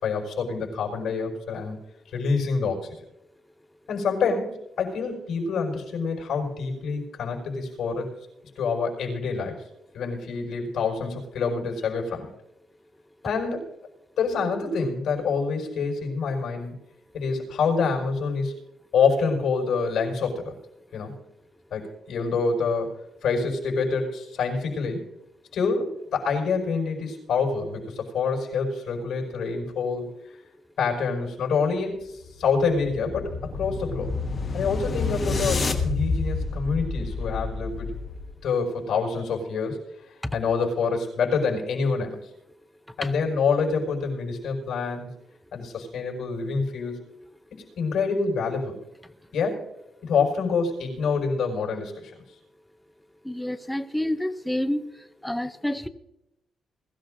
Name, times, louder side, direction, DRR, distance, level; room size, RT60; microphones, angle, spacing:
voice 1, 0.0-1.8 2.1-2.9 3.9-8.1 8.6-9.6 9.9-12.3 13.2-13.7 14.2-16.8 17.1-18.5 18.9-20.5 20.9-21.2 21.7-22.9 23.2-25.0 25.5-30.1 30.8-34.1 34.5-37.9 38.4-39.8 40.3-42.2 43.0-45.2 45.5-47.0 47.5-48.8 49.3-49.6 50.0-52.1, left 5 dB, 70° left, 1 dB, 5.3 m, -26 dB
sound 1, 32.1-38.4, left 3 dB, 35° left, 1.4 m, -29 dB
voice 2, 53.3-54.8 55.2-55.9, left 1 dB, 5° left, 10 dB, 0.5 m, -28 dB
21.5 x 14.5 x 2.6 m, 0.88 s
cardioid pair, 165°, 0 cm